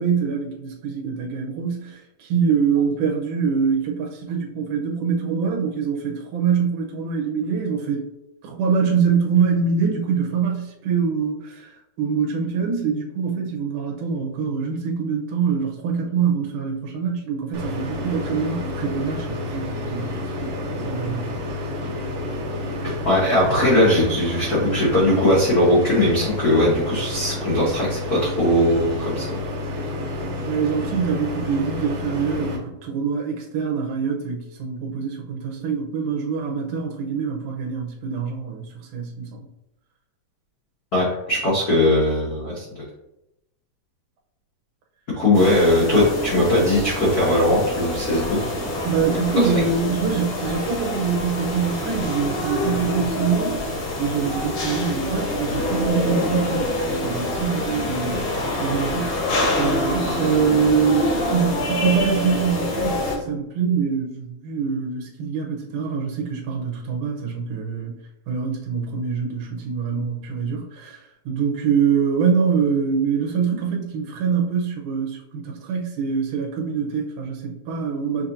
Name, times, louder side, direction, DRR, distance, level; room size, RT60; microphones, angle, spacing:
voice 1, 0.0-8.1 8.4-21.3 30.5-39.5 48.8-68.0 68.3-78.3, right 6 dB, 85° right, -1 dB, 2.2 m, -24 dB
sound 1, 17.5-32.6, left 2 dB, 65° right, 1.5 m, -30 dB
voice 2, 22.8-29.3 40.9-42.8 45.1-48.4, left 1 dB, 85° left, -7 dB, 0.8 m, -19 dB
sound 2, 45.3-63.2, left 1 dB, 65° left, 1.3 m, -26 dB
6.6 x 2.8 x 2.6 m, 0.87 s
omnidirectional pair, 3.6 m